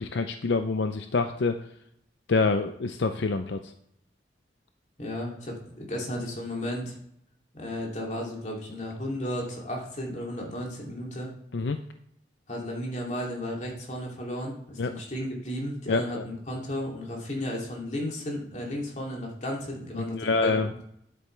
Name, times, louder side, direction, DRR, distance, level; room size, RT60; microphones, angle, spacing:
voice 1, 0.0-1.6 2.3-3.7 11.5-11.8 14.8-14.9 15.9-16.2 19.9-20.7, left 3 dB, 80° left, 8 dB, 0.5 m, -26 dB
voice 2, 5.0-7.0 7.5-11.3 12.5-20.6, left 1 dB, 40° left, -1 dB, 2.8 m, -34 dB
10.0 x 8.4 x 3.3 m, 0.73 s
head